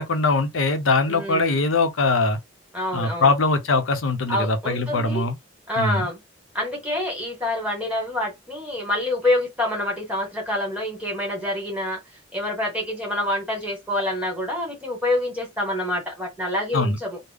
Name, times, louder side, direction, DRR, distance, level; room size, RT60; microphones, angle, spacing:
voice 1, 0.0-2.4 2.9-5.4 5.8-6.1 16.7-17.0, left 3 dB, 80° left, 0.7 m, -22 dB
voice 2, 1.1-1.6 2.7-3.3 4.3-5.3 5.7-6.2 6.5-12.0 12.3-17.2, left 1 dB, 5° right, 1.7 m, -27 dB
3.5 x 2.1 x 3.5 m
head